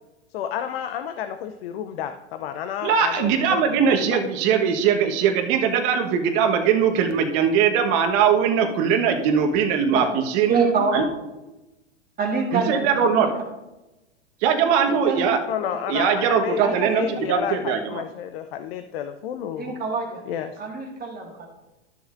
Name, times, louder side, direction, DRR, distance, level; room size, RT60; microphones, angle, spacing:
voice 1, 0.3-4.2 15.5-19.8 20.3-20.5, left 9 dB, 60° left, 8 dB, 0.7 m, -31 dB
voice 2, 2.8-10.5 10.9-11.0 12.5-13.3 14.4-15.4 15.9-18.0, right 7 dB, 45° right, 4 dB, 1.3 m, -21 dB
voice 3, 10.5-10.9 12.2-13.3 15.1-15.3 16.6-17.0 19.6-20.2 20.6-21.5, right 5 dB, 25° right, -1 dB, 1.9 m, -25 dB
13.0 x 7.0 x 2.6 m, 1.0 s
hypercardioid pair, 105°, 35 cm